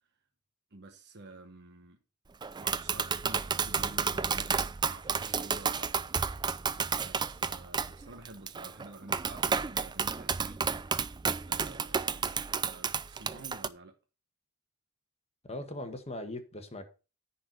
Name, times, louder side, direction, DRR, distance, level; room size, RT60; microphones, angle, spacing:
voice 1, 0.7-2.0 2.6-4.5 4.9-5.9 6.9-10.6 11.4-13.9, right 2 dB, 50° right, 1.1 m, -50 dB
Tap, 2.4-13.7, right 6 dB, 20° right, 0.4 m, -32 dB
voice 2, 15.4-16.9, left 1 dB, 30° left, 1.5 m, -40 dB
10.0 x 4.4 x 6.5 m
head